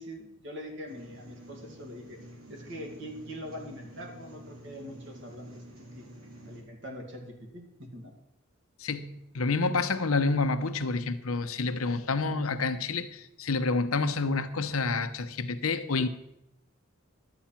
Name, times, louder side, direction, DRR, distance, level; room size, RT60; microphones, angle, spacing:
voice 1, 0.0-2.2 2.5-6.1 6.4-8.1, equal, 60° right, 2.2 m, -43 dB
sound 1, 0.9-6.6, right 1 dB, 80° right, 2.4 m, -49 dB
voice 2, 8.8-16.1, left 3 dB, 85° left, 0.8 m, -28 dB
11.5 x 8.5 x 5.8 m
head